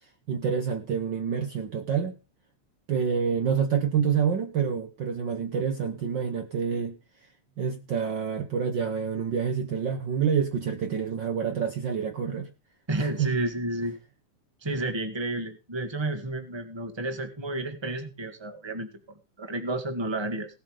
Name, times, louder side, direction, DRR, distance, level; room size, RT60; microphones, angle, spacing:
voice 1, 0.3-2.1 2.9-7.0 7.6-12.5 13.0-13.3, right 7 dB, 90° right, 7 dB, 1.0 m, -27 dB
voice 2, 12.9-13.9 14.6-20.5, right 2 dB, 15° right, 7 dB, 0.9 m, -31 dB
17.5 x 7.6 x 4.9 m, 0.30 s
omnidirectional pair, 3.6 m